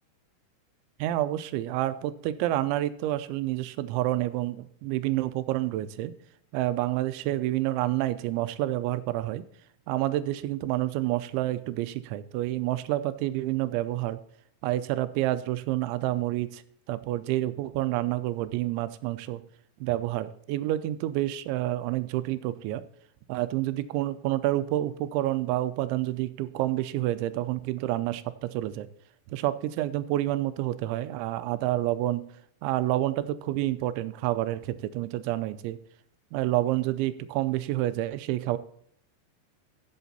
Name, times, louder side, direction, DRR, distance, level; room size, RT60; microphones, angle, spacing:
voice 1, 1.0-6.1 6.5-9.4 9.9-14.2 14.6-16.6 16.9-19.4 19.8-22.8 23.3-28.9 29.3-32.2 32.6-35.8 36.3-38.6, right 15 dB, 85° right, 13 dB, 3.0 m, -28 dB
15.0 x 6.2 x 4.1 m, 0.67 s
omnidirectional pair, 5.3 m